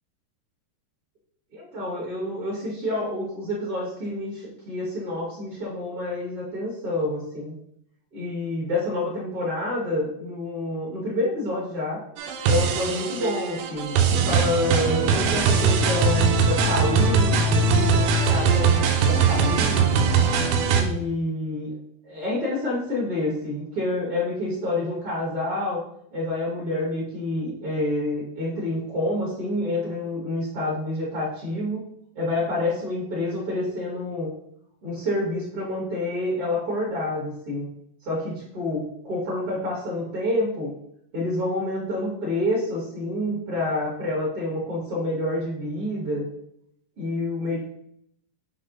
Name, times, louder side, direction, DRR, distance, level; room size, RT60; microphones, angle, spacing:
voice 1, 1.5-7.5 8.1-12.0 12.4-20.0 20.7-21.8 22.0-25.8 26.1-31.9 32.1-34.3 34.8-37.7 38.0-40.7 41.1-46.2 47.0-47.6, left 1 dB, 40° right, -6 dB, 2.8 m, -28 dB
sound 1, 12.2-20.8, right 5 dB, 90° right, 2.7 m, -21 dB
8.6 x 3.2 x 3.9 m, 0.71 s
omnidirectional pair, 4.3 m